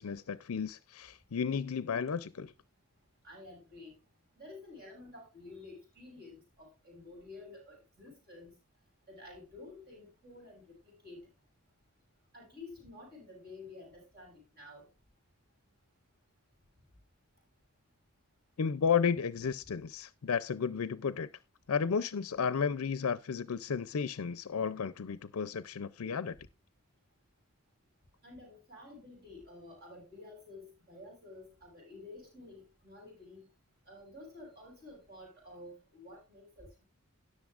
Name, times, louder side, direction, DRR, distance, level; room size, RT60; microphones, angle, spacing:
voice 1, 0.0-2.5 18.6-21.3 21.7-26.4, left 6 dB, 70° left, 0.5 m, -33 dB
voice 2, 3.2-3.9 4.4-8.5 9.1-11.2 12.3-14.9 28.2-33.5 33.9-36.8, left 2 dB, 45° right, 6.5 m, -51 dB
17.5 x 6.6 x 2.4 m
head